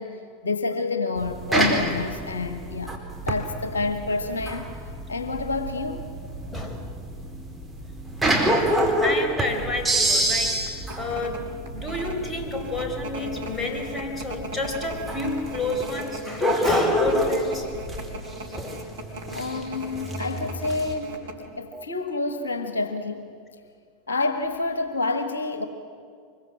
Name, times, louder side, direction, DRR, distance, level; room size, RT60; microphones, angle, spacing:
voice 1, 0.0-3.0 3.3-4.8 5.1-6.1 19.3-21.3 21.6-23.3 24.1-25.7, left 3 dB, 75° left, 8 dB, 1.4 m, -28 dB
sound 1, 1.2-20.9, right 1 dB, 5° right, 4.4 m, -27 dB
voice 2, 6.5-6.9 8.2-17.7 18.5-18.8 21.7-21.9, left 2 dB, 15° left, 3 dB, 4.1 m, -30 dB
sound 2, 10.7-21.5, equal, 75° right, 4.0 m, -38 dB
24.5 x 22.5 x 7.9 m, 2.3 s
figure-of-eight pair, 85°, 0 cm